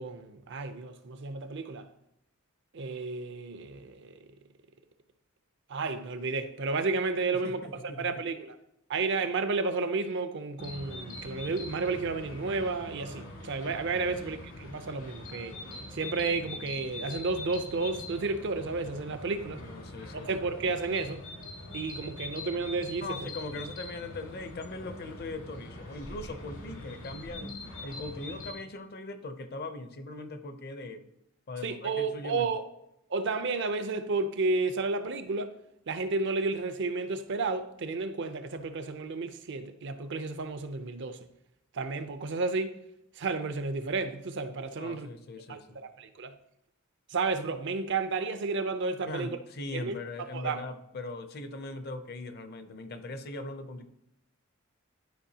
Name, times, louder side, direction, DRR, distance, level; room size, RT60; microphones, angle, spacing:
voice 1, 0.0-1.9 2.7-4.1 5.7-7.6 8.0-8.5 8.9-15.6 15.9-19.6 20.1-21.2 21.7-23.3 31.6-32.6 33.1-35.5 35.9-41.2 41.7-42.7 43.2-45.1 45.5-46.3 47.1-49.4 49.7-49.9 50.3-50.6, right 3 dB, 60° right, 0.6 m, -32 dB
voice 2, 7.3-8.2 14.1-14.3 19.6-20.4 23.0-31.1 31.5-32.5 44.8-45.8 49.1-53.9, left 2 dB, 50° left, 0.6 m, -40 dB
sound 1, 10.6-28.5, left 2 dB, 75° left, 1.9 m, -43 dB
11.5 x 4.7 x 2.8 m
head